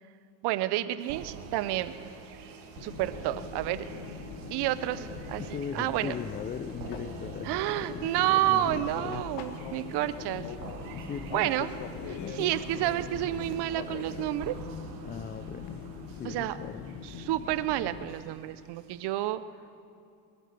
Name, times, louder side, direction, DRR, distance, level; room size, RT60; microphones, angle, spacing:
voice 1, 0.4-1.9 2.8-3.9 4.5-5.4 5.7-6.1 7.4-10.6 11.3-11.7 12.0-14.6 16.2-16.6 17.0-19.4, right 14 dB, 55° right, 14 dB, 0.8 m, -30 dB
sound 1, 1.0-19.3, right 4 dB, 75° right, 1.8 m, -53 dB
sound 2, 1.1-16.3, right 7 dB, 90° right, 1.2 m, -47 dB
Fixed-wing aircraft airplane, 2.8-18.1, left 6 dB, 60° left, 1.4 m, -42 dB
voice 2, 5.4-9.2 10.9-11.5 12.1-13.0 15.0-15.9 16.1-17.0, left 7 dB, 20° left, 11 dB, 0.4 m, -39 dB
21.0 x 8.3 x 6.8 m, 2.5 s
supercardioid pair, 85°, 46 cm